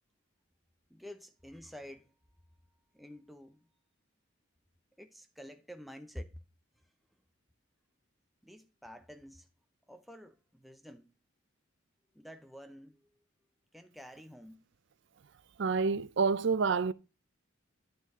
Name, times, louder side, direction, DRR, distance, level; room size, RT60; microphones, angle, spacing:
voice 1, 0.9-2.1 2.9-3.6 5.0-6.3 8.4-9.5 9.9-11.1 12.1-13.0 13.7-14.6, equal, ahead, 0.6 m, -49 dB
voice 2, 15.6-16.9, right 5 dB, 60° right, 0.4 m, -28 dB
10.0 x 6.7 x 3.6 m
head